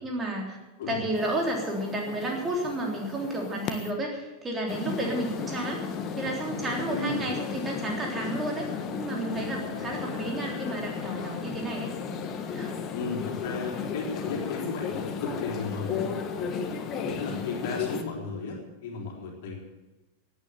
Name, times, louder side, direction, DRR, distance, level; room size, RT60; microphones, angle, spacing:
voice 1, 0.0-0.6 0.9-5.8 6.2-8.7 9.0-11.9 12.5-12.7, right 1 dB, 20° right, 0 dB, 3.5 m, -31 dB
sound 1, 1.1-3.9 4.7-18.0, left 6 dB, 30° left, 1.5 m, -34 dB
voice 2, 6.9-7.3 12.9-16.5 17.0-19.6, left 4 dB, 50° left, 0 dB, 3.8 m, -35 dB
17.5 x 9.8 x 7.0 m, 1.1 s
figure-of-eight pair, 90°, 0 cm